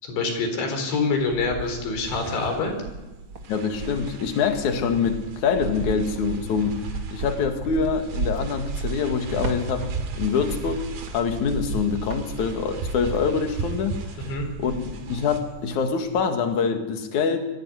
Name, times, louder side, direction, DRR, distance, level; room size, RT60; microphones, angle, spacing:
voice 1, 0.0-2.7 14.3-14.5, left 4 dB, 80° left, 5 dB, 6.3 m, -26 dB
Cricket, 0.8-2.3 2.8-15.8 16.1-16.6, right 3 dB, 40° right, 2.1 m, -34 dB
sound 1, 2.0-15.4, right 5 dB, 75° right, 4.8 m, -39 dB
voice 2, 3.5-6.8 7.1-9.9 10.1-14.0 14.6-17.4, left 6 dB, 50° left, 6 dB, 2.8 m, -25 dB
23.0 x 15.5 x 9.9 m, 1.1 s
omnidirectional pair, 5.2 m